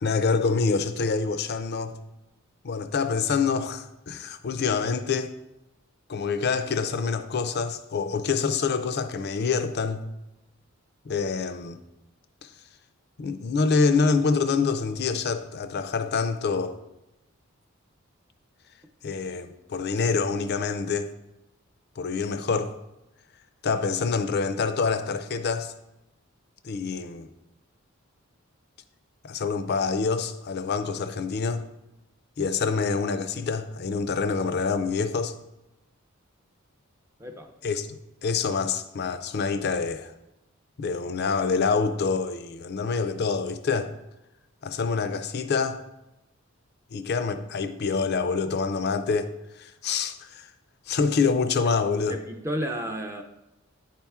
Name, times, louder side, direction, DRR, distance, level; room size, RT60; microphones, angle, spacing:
voice 1, 0.0-2.0 2.6-5.3 6.1-10.0 11.0-11.8 12.4-12.5 13.2-16.8 19.0-21.1 22.0-22.7 23.6-25.7 26.6-27.3 29.2-31.7 32.4-35.3 37.6-40.1 40.8-43.9 44.6-45.8 46.9-50.5 50.9-52.2, left 5 dB, 50° left, 0.5 m, -26 dB
voice 2, 37.2-37.5 52.1-53.2, equal, 15° right, 0.4 m, -32 dB
9.4 x 4.3 x 3.5 m
head